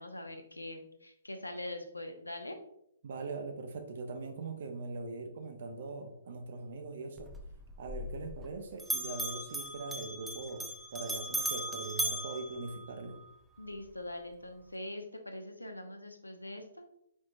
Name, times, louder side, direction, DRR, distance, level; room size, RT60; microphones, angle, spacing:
voice 1, 0.0-2.6 13.6-16.8, left 1 dB, 85° left, 5 dB, 0.7 m, -43 dB
voice 2, 3.0-7.3 7.8-13.2, right 3 dB, 50° right, 6 dB, 0.7 m, -41 dB
Bell, 7.2-8.5 8.8-13.3, right 1 dB, 5° right, 0.5 m, -38 dB
4.6 x 4.4 x 2.5 m, 0.75 s
figure-of-eight pair, 125°, 0 cm